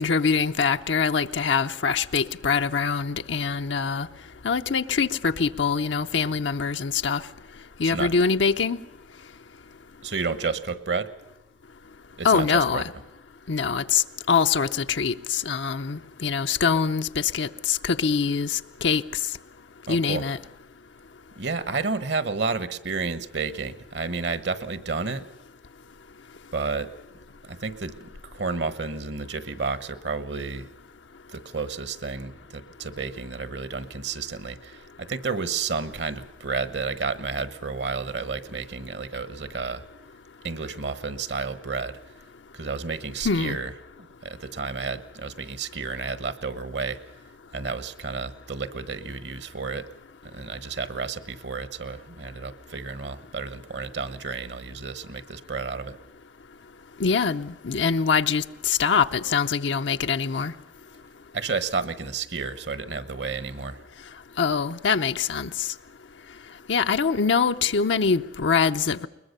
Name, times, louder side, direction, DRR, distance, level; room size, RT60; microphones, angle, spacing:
voice 1, 0.0-4.1 4.4-7.2 7.8-8.8 12.2-12.8 13.5-19.0 19.9-20.4 43.2-43.6 57.0-60.5 64.4-65.5 66.7-69.1, left 5 dB, 85° left, 0.7 m, -24 dB
voice 2, 10.0-11.1 12.2-12.8 19.9-20.3 21.4-25.2 26.5-26.9 27.4-30.7 31.3-39.8 40.4-42.1 42.5-43.7 44.2-47.0 47.5-49.9 50.2-56.0 61.3-63.8, right 4 dB, 70° right, 1.2 m, -31 dB
21.5 x 20.5 x 6.7 m
head